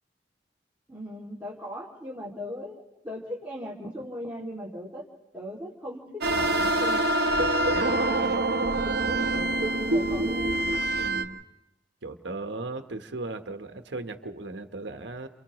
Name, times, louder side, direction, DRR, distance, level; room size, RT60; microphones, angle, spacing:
voice 1, 0.9-5.0 5.3-7.1 7.9-10.5, equal, 10° right, -6 dB, 2.5 m, -39 dB
sound 1, 6.2-11.2, right 1 dB, 65° right, 1.1 m, -25 dB
voice 2, 11.0-11.4 12.0-15.3, right 2 dB, 85° right, 7 dB, 1.2 m, -37 dB
30.0 x 28.5 x 3.1 m, 0.95 s
head